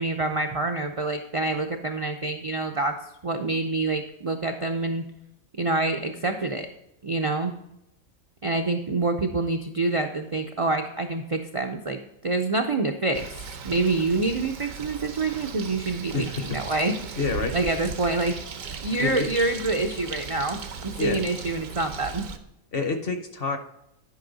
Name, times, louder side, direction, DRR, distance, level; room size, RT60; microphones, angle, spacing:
voice 1, 0.0-2.9 3.2-5.0 5.6-6.7 7.0-7.5 8.4-13.2 13.6-17.0 17.5-18.3 18.8-22.3, right 3 dB, 45° right, 4 dB, 0.4 m, -26 dB
Bird, 13.1-22.4, right 5 dB, 80° right, 1.2 m, -37 dB
voice 2, 16.1-16.6 17.2-17.6 19.0-19.3 21.0-21.2 22.7-23.6, left 4 dB, 50° left, 7 dB, 1.0 m, -28 dB
11.5 x 5.5 x 3.9 m, 0.83 s
omnidirectional pair, 1.4 m